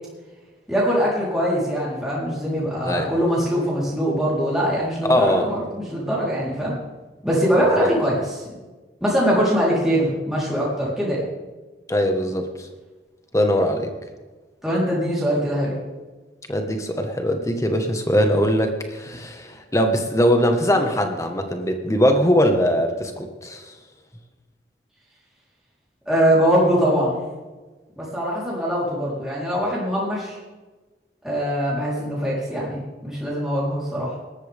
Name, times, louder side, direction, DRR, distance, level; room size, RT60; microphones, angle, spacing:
voice 1, 0.7-6.7 7.2-8.5 9.0-11.3 14.6-15.8 26.1-27.2 28.0-30.4 31.2-34.1, equal, 5° right, -7 dB, 4.0 m, -22 dB
voice 2, 5.1-5.4 7.6-7.9 11.9-12.7 13.3-13.9 16.5-23.7, equal, 15° left, 5 dB, 1.6 m, -21 dB
19.0 x 13.5 x 3.7 m, 1.3 s
head